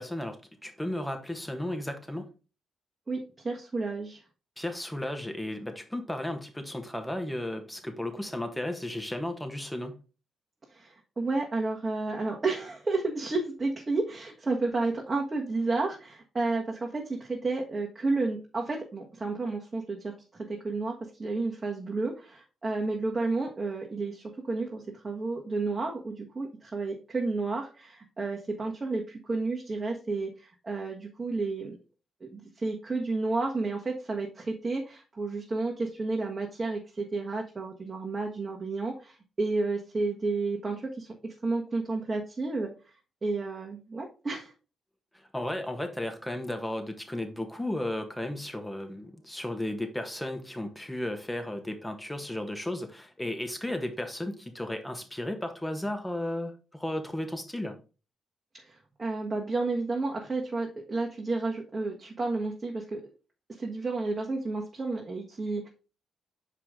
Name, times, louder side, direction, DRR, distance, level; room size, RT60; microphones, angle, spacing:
voice 1, 0.0-2.3 4.6-10.0 45.1-57.8, left 1 dB, 10° left, 6 dB, 1.5 m, -34 dB
voice 2, 3.1-4.2 10.7-20.1 20.5-20.9 21.2-31.8 32.2-42.7 43.2-44.5 58.6-63.0 63.6-65.7, right 3 dB, 35° right, 0 dB, 1.3 m, -31 dB
5.8 x 5.0 x 3.7 m, 0.33 s
hypercardioid pair, 45°, 0 cm